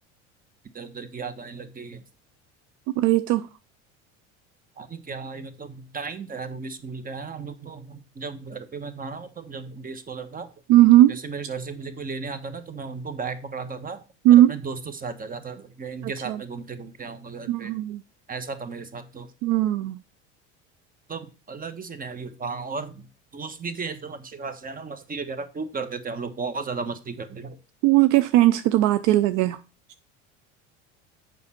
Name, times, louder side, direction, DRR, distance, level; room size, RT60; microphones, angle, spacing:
voice 1, 0.7-2.0 4.8-10.5 11.1-14.0 14.3-17.7 18.3-19.3 21.1-23.1 23.3-27.6, right 4 dB, 25° right, 1.2 m, -35 dB
voice 2, 3.0-3.4 10.7-11.2 14.2-14.6 16.3-16.4 17.5-18.0 19.4-20.0 27.8-29.6, right 14 dB, 60° right, 0.5 m, -18 dB
7.2 x 5.5 x 4.3 m
hypercardioid pair, 75°, 35 cm